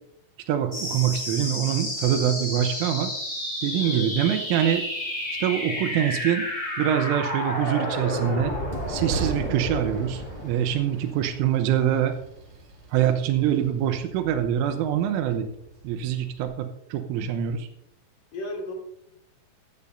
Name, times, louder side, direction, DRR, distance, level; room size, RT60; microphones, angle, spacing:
voice 1, 0.5-3.1 3.6-4.8 5.4-6.5 6.8-8.5 8.9-12.2 12.9-15.5 15.8-17.7, right 10 dB, 90° right, 7 dB, 3.4 m, -24 dB
sound 1, 0.7-11.7, left 1 dB, 5° left, 3.3 m, -31 dB
voice 2, 3.8-4.2 18.3-18.7, left 1 dB, 40° left, -1 dB, 3.9 m, -35 dB
Train, 7.9-16.5, right 4 dB, 70° right, 4.4 m, -41 dB
15.5 x 13.5 x 2.7 m, 0.75 s
omnidirectional pair, 5.7 m